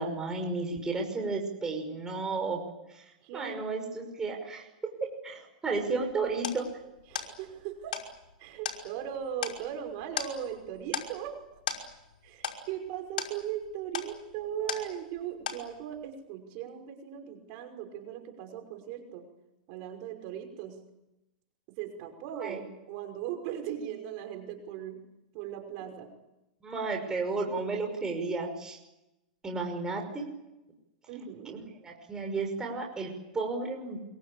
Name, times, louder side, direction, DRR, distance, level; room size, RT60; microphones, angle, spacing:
voice 1, 0.0-2.6 2.9-3.0 3.3-4.7 5.2-6.7 22.4-22.6 26.6-28.8 29.4-30.2 31.5-34.0, right 3 dB, 15° right, 2 dB, 5.8 m, -33 dB
voice 2, 3.2-3.6 7.1-8.1 8.4-11.4 12.2-19.3 19.7-20.8 21.7-25.0 25.3-26.1 31.1-31.6, right 9 dB, 45° right, 5 dB, 5.7 m, -38 dB
sound 1, 5.8-15.2 15.5-16.0, left 7 dB, 85° left, 5.5 m, -38 dB
26.0 x 23.5 x 8.7 m, 0.93 s
hypercardioid pair, 140°, 5 cm